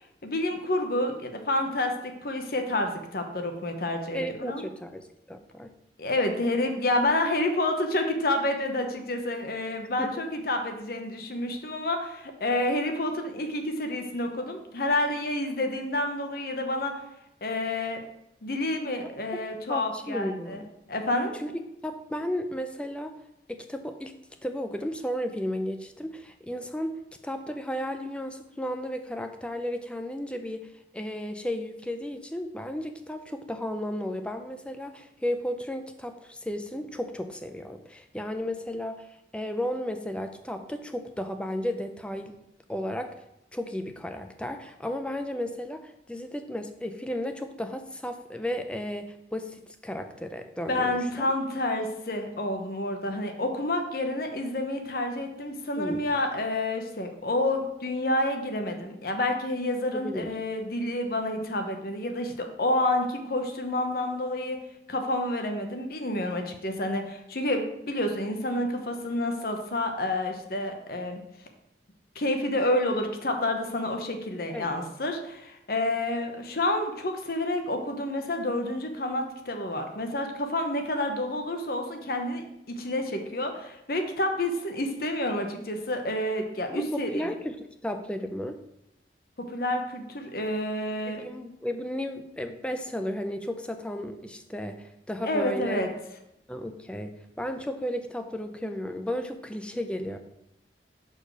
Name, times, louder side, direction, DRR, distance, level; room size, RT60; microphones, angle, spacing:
voice 1, 0.2-4.6 6.0-17.0 17.4-18.0 18.4-20.6 20.9-21.3 50.7-64.6 64.9-71.2 72.1-87.3 89.4-91.2 95.2-95.9, left 1 dB, 55° left, 5 dB, 0.9 m, -29 dB
voice 2, 4.1-5.7 10.0-10.2 19.7-20.7 21.4-23.1 23.5-24.1 24.4-27.0 27.2-30.7 30.9-39.1 39.3-42.4 42.7-43.1 43.5-51.3 55.8-56.0 59.9-60.3 74.5-74.7 86.7-88.6 91.1-95.9 96.5-100.2, equal, 5° left, 7 dB, 0.4 m, -34 dB
4.9 x 4.5 x 6.1 m, 0.82 s
head